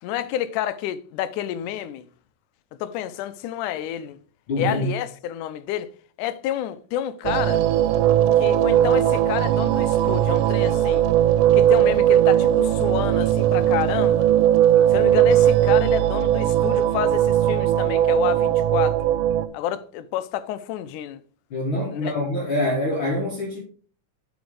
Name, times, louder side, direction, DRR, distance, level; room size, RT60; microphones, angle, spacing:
voice 1, 0.0-2.0 2.8-4.2 4.6-5.9 6.2-7.6 8.4-11.0 11.5-14.3 14.9-19.1 19.5-21.2 21.9-22.2, left 12 dB, 80° left, 2.1 m, -29 dB
voice 2, 4.5-4.9 21.5-23.6, left 1 dB, 45° left, 2.0 m, -25 dB
sound 1, 7.2-19.5, right 11 dB, 90° right, 2.1 m, -19 dB
8.0 x 5.2 x 4.8 m
omnidirectional pair, 3.6 m